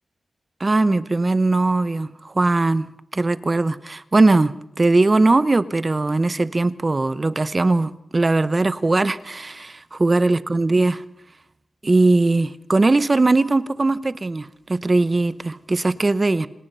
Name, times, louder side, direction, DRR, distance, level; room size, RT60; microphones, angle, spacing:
voice 1, 0.6-2.9 3.1-11.0 11.8-16.5, right 2 dB, 30° right, 0.8 m, -20 dB
26.5 x 18.5 x 5.5 m
wide cardioid pair, 85°, 0 cm